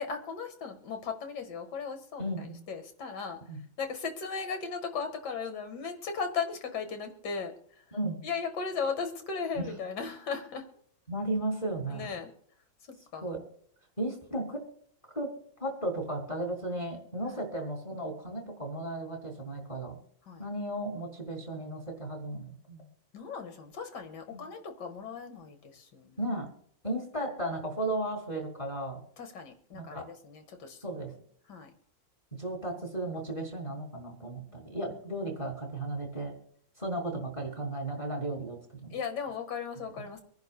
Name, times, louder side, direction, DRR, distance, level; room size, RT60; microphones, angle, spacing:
voice 1, 0.0-3.4 3.8-7.5 8.2-10.6 11.9-12.3 13.1-13.3 20.3-20.4 23.1-26.2 29.2-30.8 31.5-31.7 38.9-40.2, left 5 dB, 60° left, 6 dB, 2.1 m, -37 dB
voice 2, 2.2-2.6 3.5-3.6 7.9-8.2 9.6-9.7 11.1-12.1 13.2-13.4 14.0-14.6 15.1-15.3 15.6-20.0 20.4-22.9 24.3-24.4 26.2-26.5 26.8-29.0 29.7-30.1 30.8-31.1 32.4-36.3 36.8-38.9, right 1 dB, 15° left, 2 dB, 3.9 m, -35 dB
26.0 x 10.5 x 2.2 m, 0.63 s
omnidirectional pair, 2.1 m